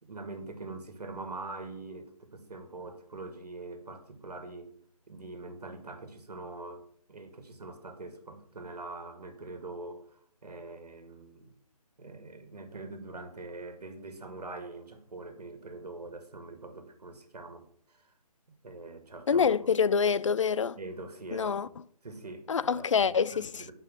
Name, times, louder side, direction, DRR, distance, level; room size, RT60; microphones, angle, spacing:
voice 1, 0.0-4.7 5.1-10.1 10.4-11.5 12.0-17.6 18.6-19.7 20.8-21.6 22.0-23.7, right 3 dB, 80° right, 2.0 m, -43 dB
voice 2, 19.3-20.8 21.3-21.7 22.5-23.7, left 6 dB, 50° left, 0.4 m, -26 dB
7.3 x 5.4 x 6.3 m
hypercardioid pair, 165°, 20 cm